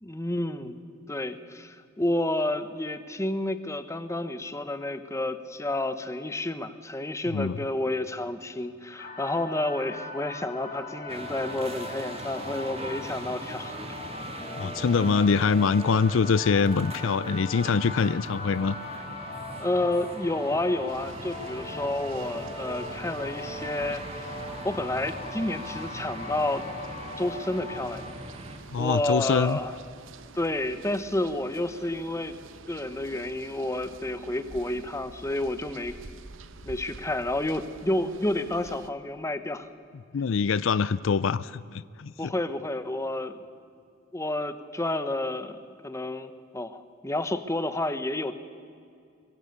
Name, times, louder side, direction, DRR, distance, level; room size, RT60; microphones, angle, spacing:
voice 1, 0.0-0.8 1.1-13.8 14.5-15.1 19.6-24.3 24.6-26.7 27.2-28.1 28.8-29.7 30.3-32.3 32.7-36.0 36.6-39.7 42.2-43.4 44.1-48.3, left 1 dB, 15° left, 11 dB, 1.0 m, -30 dB
sound 1, 9.0-28.1, left 2 dB, 45° left, 2.4 m, -40 dB
sound 2, 11.1-28.6, right 1 dB, 30° right, 2.0 m, -42 dB
voice 2, 14.6-18.8 28.7-29.6 40.1-42.3, left 5 dB, 70° left, 17 dB, 0.4 m, -24 dB
sound 3, 20.9-38.9, right 3 dB, 70° right, 0.9 m, -48 dB
23.5 x 23.0 x 6.6 m, 2.4 s
head